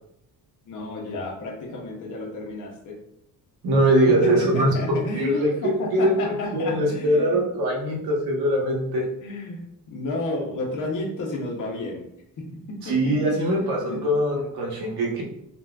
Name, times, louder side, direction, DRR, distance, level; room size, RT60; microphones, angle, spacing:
voice 1, 0.7-3.0 4.1-7.4 9.2-9.6 9.9-12.0 12.4-12.5 12.8-14.0, left 2 dB, 55° left, 0 dB, 0.7 m, -31 dB
voice 2, 3.6-5.5 5.9-6.1 6.5-9.0 12.8-15.2, right 1 dB, 75° right, -2 dB, 0.9 m, -22 dB
3.8 x 2.2 x 2.2 m, 0.79 s
cardioid pair, 165°, 37 cm